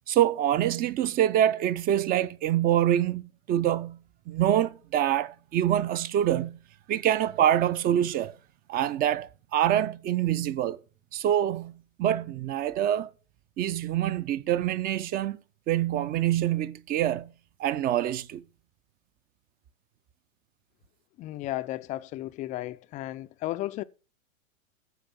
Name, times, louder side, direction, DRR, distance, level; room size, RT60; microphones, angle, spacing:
voice 1, 0.1-4.0 4.3-6.6 6.9-8.3 8.7-10.8 11.1-11.7 12.0-13.1 13.6-15.4 15.7-17.3 17.6-18.4, right 11 dB, 20° right, 0.6 m, -25 dB
voice 2, 21.2-23.8, left 15 dB, 20° left, 0.5 m, -34 dB
14.0 x 5.2 x 7.2 m
hypercardioid pair, 115°, 40 cm